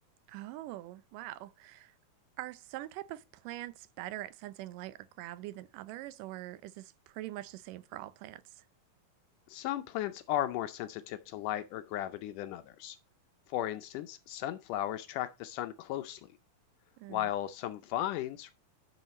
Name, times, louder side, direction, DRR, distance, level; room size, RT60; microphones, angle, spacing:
voice 1, 0.3-1.9 2.4-8.7 17.0-17.3, right 15 dB, 80° right, 2.0 m, -43 dB
voice 2, 9.5-13.0 13.5-16.2 17.1-18.5, left 13 dB, 80° left, 1.9 m, -35 dB
11.0 x 5.6 x 4.1 m
omnidirectional pair, 4.2 m